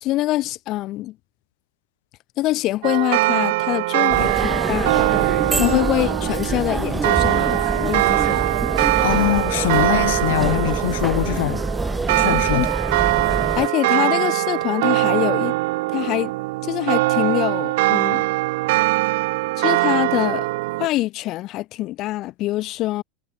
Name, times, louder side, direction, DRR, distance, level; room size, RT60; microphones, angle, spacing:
voice 1, 0.0-1.2 2.4-5.1 5.5-8.4 12.5-12.7 13.5-15.5 15.9-16.3 16.6-18.2 19.6-20.5 20.8-23.0, left 16 dB, 35° left, 0.5 m, -24 dB
sound 1, 2.8-20.9, right 21 dB, 60° right, 1.4 m, -22 dB
sound 2, 4.1-13.7, right 3 dB, 5° right, 1.3 m, -26 dB
voice 2, 9.0-11.6 12.2-12.7, left 16 dB, 75° left, 0.8 m, -22 dB
supercardioid pair, 175°, 0 cm